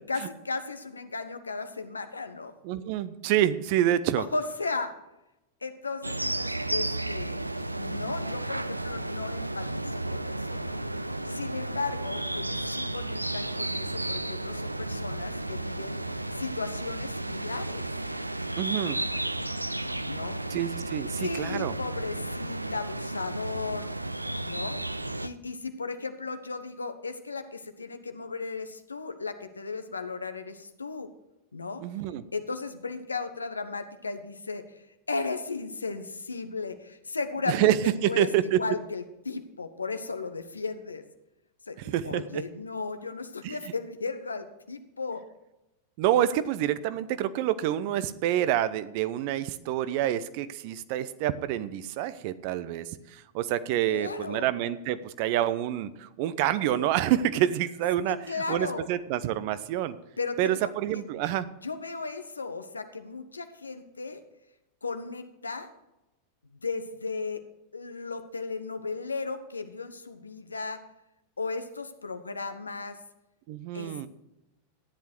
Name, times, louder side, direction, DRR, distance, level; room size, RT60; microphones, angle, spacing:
voice 1, 0.1-2.5 4.2-5.0 5.6-7.4 7.8-10.8 11.3-16.0 16.4-17.8 20.0-20.4 21.2-23.9 24.4-24.8 25.2-31.1 31.5-31.8 32.3-34.7 35.1-37.8 38.0-38.3 38.6-41.0 41.7-45.3 53.9-54.5 58.1-58.9 60.2-60.7 61.6-64.2 64.8-65.7 66.5-67.4 67.7-70.9 71.4-73.0 73.7-74.1, left 4 dB, 75° left, 10 dB, 1.1 m, -35 dB
voice 2, 2.6-4.2 18.6-19.0 20.5-21.7 31.8-32.2 37.5-38.6 41.8-42.4 43.4-43.6 46.0-60.0 60.4-61.5 73.5-74.1, right 12 dB, 45° right, 14 dB, 0.8 m, -27 dB
sound 1, 6.0-25.3, right 2 dB, 85° right, 0.5 m, -33 dB
14.0 x 10.5 x 4.6 m, 0.93 s
figure-of-eight pair, 90°, 0 cm